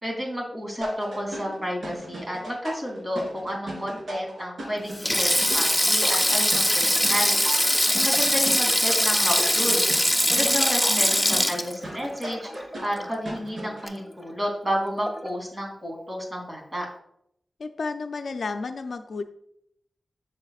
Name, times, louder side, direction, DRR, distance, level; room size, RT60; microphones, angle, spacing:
voice 1, 0.0-7.4 8.0-9.9 10.3-16.9, equal, 30° right, -1 dB, 2.9 m, -31 dB
sound 1, 0.8-13.9, equal, 65° right, 3.1 m, -37 dB
Sink (filling or washing), 4.9-13.4 13.6-13.9 15.1-15.3, equal, ahead, 0.6 m, -22 dB
voice 2, 10.4-11.4 17.6-19.2, left 4 dB, 65° left, 7 dB, 0.5 m, -33 dB
11.5 x 6.4 x 2.4 m, 0.73 s
wide cardioid pair, 130°, 0 cm